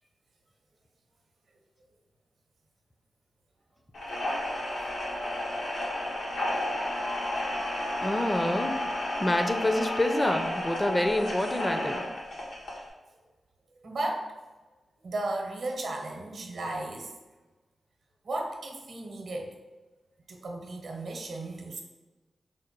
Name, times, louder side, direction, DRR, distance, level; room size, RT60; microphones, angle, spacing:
sound 1, 3.9-12.9, left 1 dB, 90° left, 1.2 m, -32 dB
voice 1, 8.0-8.8 9.2-12.0, left 1 dB, 15° left, 6 dB, 0.4 m, -27 dB
voice 2, 13.8-14.3 15.0-17.1 18.2-19.5 20.3-21.8, right 2 dB, 80° right, 1 dB, 0.8 m, -34 dB
4.8 x 2.2 x 4.4 m, 1.2 s
wide cardioid pair, 85°, 0 cm